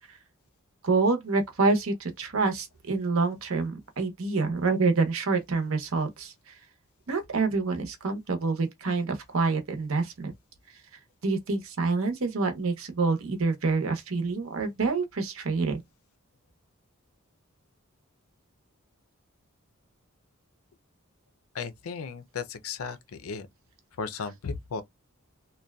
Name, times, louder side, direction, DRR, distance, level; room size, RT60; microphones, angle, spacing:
voice 1, 0.8-6.5 7.1-10.3 11.2-15.8 24.2-24.3, right 4 dB, 70° right, 0.7 m, -27 dB
voice 2, 21.5-23.5 24.0-24.8, left 5 dB, 85° left, 0.5 m, -35 dB
2.6 x 2.2 x 2.2 m
head